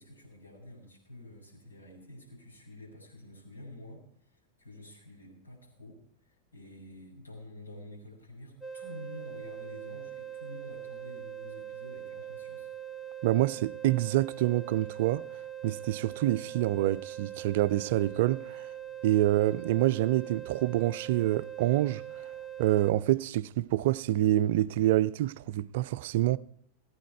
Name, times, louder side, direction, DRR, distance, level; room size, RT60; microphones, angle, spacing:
voice 1, 0.0-12.7, left 1 dB, 85° left, 5.9 m, -49 dB
sound 1, 8.6-22.9, right 10 dB, 5° left, 1.1 m, -42 dB
voice 2, 13.2-15.2 15.6-18.7 19.0-22.0 22.6-26.4, right 14 dB, 50° right, 0.4 m, -27 dB
17.0 x 9.5 x 4.6 m
figure-of-eight pair, 90°, 0 cm